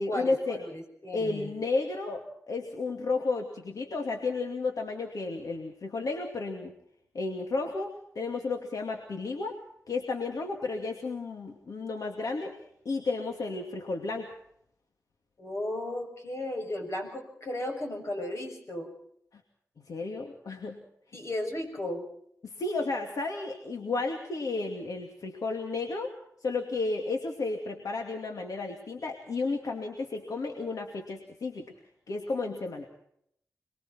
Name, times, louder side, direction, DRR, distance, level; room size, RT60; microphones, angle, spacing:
voice 1, 0.0-0.6 1.1-6.7 7.1-9.6 9.9-12.5 12.8-14.3 19.3-19.4 19.9-20.8 22.4-26.1 26.4-31.7 32.1-32.9, left 3 dB, 80° left, 3 dB, 2.6 m, -32 dB
voice 2, 0.6-1.5 15.4-18.9 21.1-22.0, left 1 dB, 50° left, 3 dB, 7.1 m, -35 dB
27.5 x 22.0 x 4.5 m, 0.71 s
wide cardioid pair, 115°, 6 cm